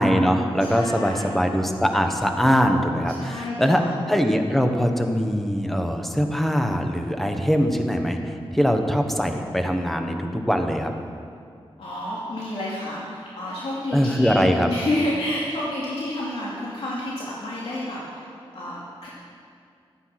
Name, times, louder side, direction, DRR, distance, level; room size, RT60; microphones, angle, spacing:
voice 1, 0.0-3.8 4.1-10.9 13.9-14.7, equal, ahead, 4 dB, 1.1 m, -22 dB
voice 2, 0.6-1.3 3.1-3.9 11.8-18.3 18.5-19.1, left 1 dB, 70° left, -7 dB, 2.6 m, -29 dB
16.0 x 13.0 x 6.0 m, 2.3 s
wide cardioid pair, 170°, 10 cm